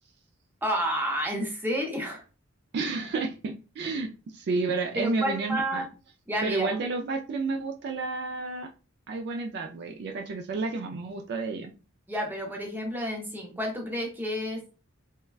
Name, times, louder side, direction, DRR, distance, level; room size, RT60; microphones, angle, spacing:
voice 1, 0.6-2.2 5.0-5.9 6.3-6.7 12.1-14.6, equal, 10° right, 0 dB, 0.6 m, -30 dB
voice 2, 2.7-5.9 6.4-8.7 9.1-11.7, right 3 dB, 50° right, 4 dB, 0.3 m, -31 dB
3.3 x 2.1 x 2.3 m, 0.33 s
head